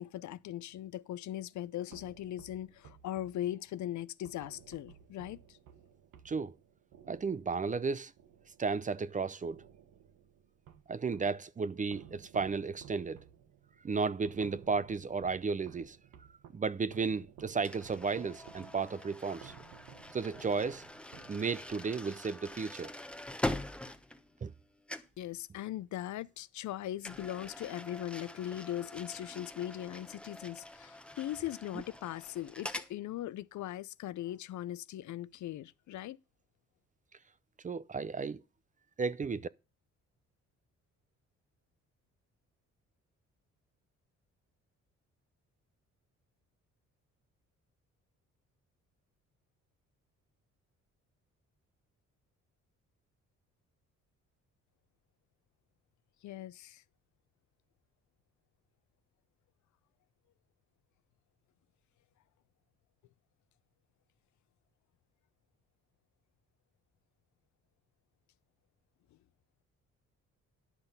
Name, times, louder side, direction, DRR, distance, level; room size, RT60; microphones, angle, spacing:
voice 1, 0.0-5.6 25.2-36.2 56.2-56.8, left 13 dB, 70° left, 0.6 m, -40 dB
sound 1, 1.9-9.0 9.4-11.4 11.9-21.8, right 9 dB, 80° right, 1.6 m, -56 dB
voice 2, 7.1-8.1 8.6-9.6 10.9-13.2 13.8-16.0 16.5-19.5 20.1-20.8 21.3-22.9 24.4-24.5 37.6-38.4 39.0-39.5, right 4 dB, 25° right, 0.5 m, -34 dB
sound 2, 17.6-24.6 24.9-25.2 27.0-32.9, left 1 dB, 5° left, 1.1 m, -43 dB
10.5 x 5.9 x 5.4 m
cardioid pair, 90°, 30 cm